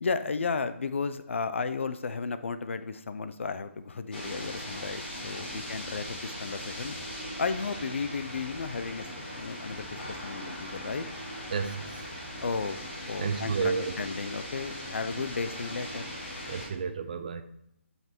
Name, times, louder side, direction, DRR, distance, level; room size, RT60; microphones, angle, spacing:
voice 1, 0.0-7.0 7.4-9.1 9.3-11.1 12.4-12.8 13.1-16.0, left 4 dB, 65° left, 12 dB, 0.7 m, -34 dB
sound 1, 4.1-16.7, left 1 dB, 50° left, 3.9 m, -39 dB
voice 2, 11.5-12.0 13.2-13.9 16.5-17.4, right 5 dB, 35° right, 9 dB, 0.6 m, -31 dB
9.3 x 5.8 x 4.5 m, 0.80 s
hypercardioid pair, 175°, 7 cm